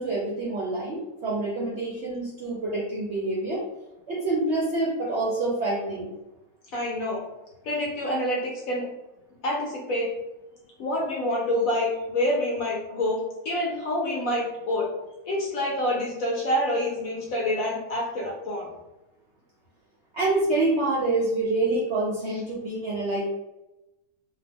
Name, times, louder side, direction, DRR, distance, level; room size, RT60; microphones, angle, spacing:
voice 1, 0.0-3.6 4.1-6.1 20.1-23.2, right 2 dB, 65° right, -5 dB, 0.7 m, -26 dB
voice 2, 6.7-7.3 7.6-8.8 9.4-10.1 10.8-14.9 15.3-18.7, left 1 dB, 65° left, -2 dB, 0.9 m, -27 dB
2.7 x 2.2 x 3.4 m, 0.96 s
omnidirectional pair, 1.8 m